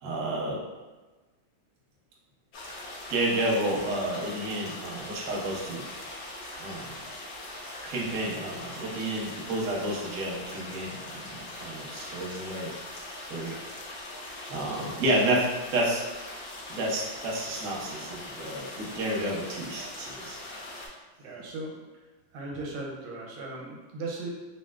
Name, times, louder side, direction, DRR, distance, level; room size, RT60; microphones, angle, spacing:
voice 1, 0.0-0.6 3.1-5.9 6.6-6.9 7.8-12.7 13.3-13.5 14.5-16.0 16.7-20.4, right 1 dB, 65° right, -3 dB, 0.8 m, -30 dB
sound 1, 2.5-20.9, left 1 dB, 70° left, 0.9 m, -41 dB
voice 2, 21.2-21.9 22.3-24.3, right 2 dB, 85° right, -1 dB, 1.5 m, -37 dB
3.2 x 2.6 x 2.3 m, 1.2 s
omnidirectional pair, 2.1 m